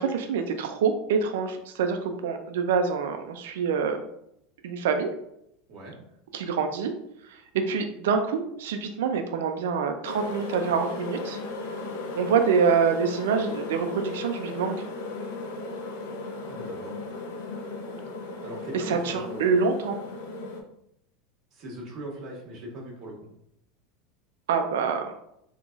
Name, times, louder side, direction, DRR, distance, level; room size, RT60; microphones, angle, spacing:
voice 1, 0.0-4.0 4.6-5.1 6.3-6.9 7.3-11.4 12.1-14.8 18.7-20.0 24.5-25.1, right 6 dB, 85° right, 6 dB, 0.4 m, -26 dB
sound 1, 10.0-20.6, left 2 dB, 85° left, 0.6 m, -36 dB
voice 2, 16.5-17.0 18.4-19.4 21.5-23.2, right 1 dB, 50° right, -2 dB, 1.1 m, -40 dB
3.8 x 2.8 x 2.4 m, 0.77 s
supercardioid pair, 135°, 0 cm